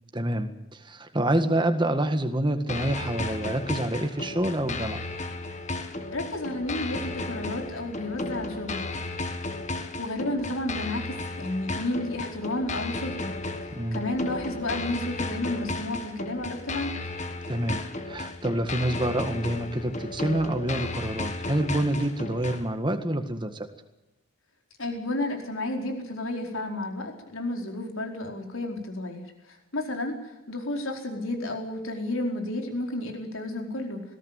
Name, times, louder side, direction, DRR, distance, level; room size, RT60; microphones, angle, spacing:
voice 1, 0.1-5.0 13.7-14.0 17.5-23.7, right 1 dB, 20° right, 8 dB, 1.7 m, -27 dB
sound 1, 2.7-22.7, left 2 dB, 30° left, 1.8 m, -34 dB
voice 2, 6.1-8.8 10.0-13.4 13.9-16.9 24.8-34.0, left 1 dB, 65° left, 3 dB, 4.7 m, -32 dB
20.5 x 17.5 x 9.2 m, 0.94 s
head